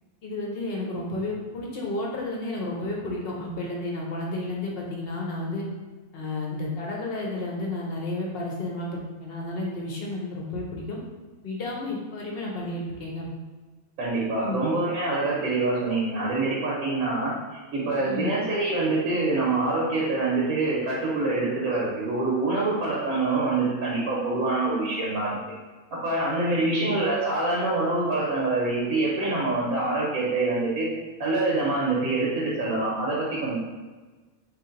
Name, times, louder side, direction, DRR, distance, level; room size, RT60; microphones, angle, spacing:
voice 1, 0.2-5.6 6.1-11.0 11.4-13.3 14.4-14.6 18.0-18.3 26.6-26.9, left 2 dB, 55° left, -2 dB, 0.7 m, -32 dB
voice 2, 14.0-25.4 25.9-30.9 31.2-33.6, right 2 dB, 80° right, -5 dB, 1.2 m, -25 dB
3.2 x 2.6 x 3.7 m, 1.3 s
omnidirectional pair, 1.5 m